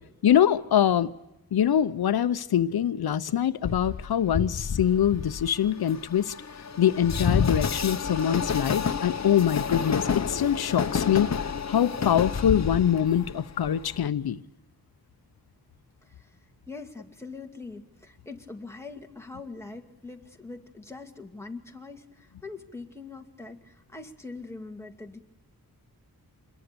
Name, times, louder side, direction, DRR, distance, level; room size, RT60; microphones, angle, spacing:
voice 1, 0.2-1.1 1.5-6.3 6.8-11.3 11.7-14.4, left 9 dB, 85° left, 0.8 m, -24 dB
Train, 3.6-14.1, left 6 dB, 50° left, 1.1 m, -29 dB
voice 2, 16.7-25.2, left 3 dB, 5° left, 2.3 m, -42 dB
26.5 x 21.5 x 6.9 m
wide cardioid pair, 135°, 36 cm